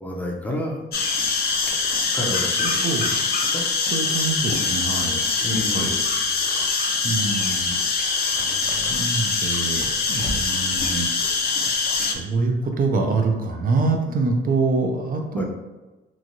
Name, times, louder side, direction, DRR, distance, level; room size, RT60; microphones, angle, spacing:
voice 1, 0.0-0.8 2.1-2.8 3.4-3.7 5.4-6.2 8.2-9.1 15.3-15.4, left 1 dB, 10° left, -1 dB, 0.6 m, -31 dB
sound 1, 0.9-12.1, left 4 dB, 50° left, 0.5 m, -23 dB
voice 2, 2.6-3.2 3.8-5.2 5.7-6.0 7.0-7.8 8.9-11.2 11.9-15.4, right 3 dB, 45° right, 3 dB, 0.5 m, -25 dB
3.1 x 2.4 x 2.7 m, 1.1 s
cardioid pair, 90°, 20 cm